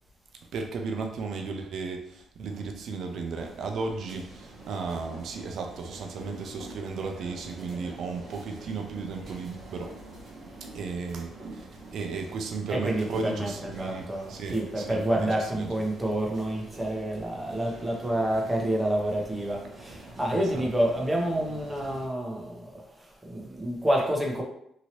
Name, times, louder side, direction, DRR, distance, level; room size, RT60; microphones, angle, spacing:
voice 1, 0.5-9.9 10.7-11.4 11.9-15.7 20.3-20.7, right 4 dB, 65° right, 4 dB, 0.4 m, -35 dB
sound 1, 3.3-22.1, right 2 dB, 45° right, 0.9 m, -46 dB
voice 2, 12.7-24.4, right 1 dB, 10° right, -1 dB, 0.8 m, -28 dB
2.8 x 2.7 x 2.9 m, 0.72 s
cardioid pair, 90°, 0 cm